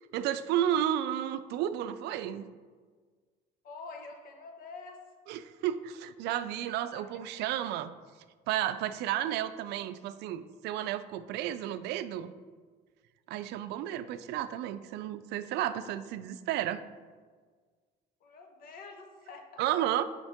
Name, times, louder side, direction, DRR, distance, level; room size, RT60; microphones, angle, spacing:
voice 1, 0.1-2.6 5.3-7.9 8.5-12.3 13.3-16.8 19.6-20.0, right 11 dB, 80° right, 12 dB, 0.4 m, -32 dB
voice 2, 3.6-5.0 6.9-7.0 18.2-19.7, left 4 dB, 60° left, 4 dB, 1.0 m, -46 dB
6.3 x 5.3 x 3.6 m, 1.5 s
cardioid pair, 110°, 17 cm